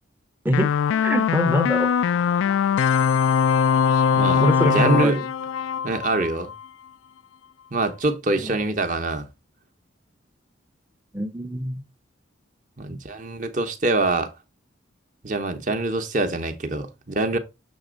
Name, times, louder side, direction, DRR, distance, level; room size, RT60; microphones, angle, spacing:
voice 1, 0.4-1.9 4.4-5.2 8.4-8.5 11.1-11.8, equal, 10° right, 0.6 m, -24 dB
sound 1, 0.5-6.7, left 7 dB, 85° left, 0.3 m, -21 dB
voice 2, 4.1-5.2 5.8-6.5 7.7-9.3 12.8-14.3 15.2-17.4, right 2 dB, 40° right, 0.9 m, -24 dB
7.1 x 3.4 x 5.1 m
head